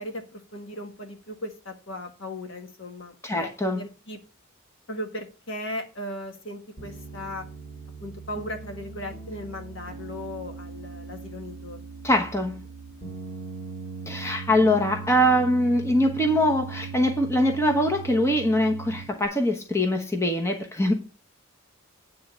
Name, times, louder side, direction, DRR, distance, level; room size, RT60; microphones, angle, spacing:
voice 1, 0.0-4.2 4.9-7.5 8.0-11.8, left 1 dB, 60° left, 1.4 m, -37 dB
voice 2, 3.2-3.8 12.0-12.6 14.1-20.9, left 1 dB, 15° left, 1.1 m, -23 dB
Piano, 6.8-19.3, right 5 dB, 40° left, 2.8 m, -39 dB
9.4 x 3.8 x 6.8 m
head